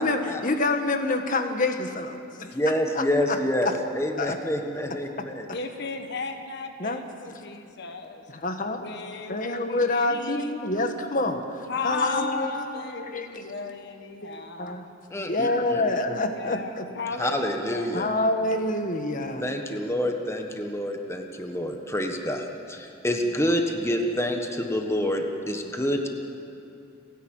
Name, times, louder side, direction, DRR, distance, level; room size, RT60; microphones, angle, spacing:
voice 1, 0.0-2.5 3.0-3.4 4.2-4.4 6.8-7.0 8.3-8.8 9.3-11.4 11.8-13.4 14.2-14.8 15.3-16.9 17.9-19.4, left 2 dB, 45° left, 6 dB, 1.5 m, -27 dB
voice 2, 2.5-5.5 15.1-15.8 17.2-18.1 19.4-26.1, equal, 15° left, 3 dB, 1.4 m, -27 dB
voice 3, 5.5-8.2 8.8-10.5 11.7-14.9 16.3-17.9, left 3 dB, 60° left, 6 dB, 1.2 m, -35 dB
29.5 x 11.0 x 9.0 m, 2.6 s
head